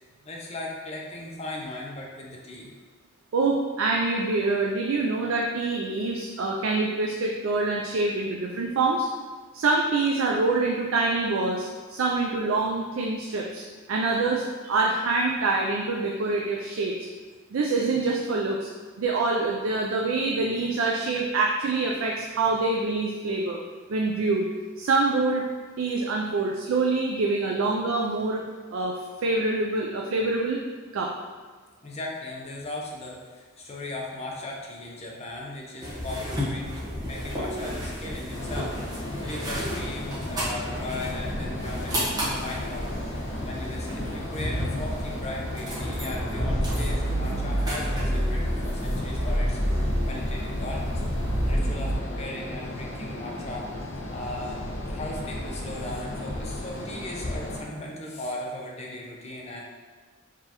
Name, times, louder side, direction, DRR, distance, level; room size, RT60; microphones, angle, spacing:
voice 1, 0.2-2.7 31.8-43.0 43.5-51.0 51.5-53.7 54.1-59.6, left 2 dB, 30° left, -2 dB, 0.7 m, -38 dB
voice 2, 3.3-9.1 9.5-17.1 17.5-18.7 19.0-23.6 23.9-24.5 24.8-25.4 25.8-28.4 28.7-30.6 30.9-31.1, right 3 dB, 80° right, 0 dB, 0.4 m, -25 dB
sound 1, 35.8-51.9, equal, 20° right, 1.2 m, -30 dB
sound 2, 38.3-57.6, left 1 dB, 90° left, 0.9 m, -35 dB
4.9 x 3.3 x 2.9 m, 1.4 s
head